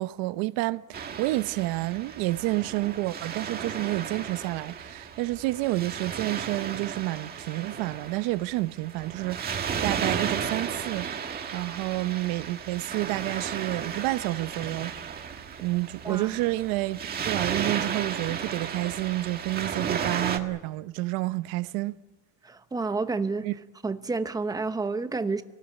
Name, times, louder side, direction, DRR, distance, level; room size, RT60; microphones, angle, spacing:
voice 1, 0.0-14.9 15.6-21.9 23.4-23.5, right 19 dB, 85° right, 0.9 m, -29 dB
Waves surf, 0.9-20.4, right 7 dB, 25° right, 1.6 m, -34 dB
voice 2, 22.4-23.5 23.8-25.4, right 3 dB, 10° right, 0.9 m, -29 dB
26.5 x 18.5 x 8.3 m
cardioid pair, 165°, 34 cm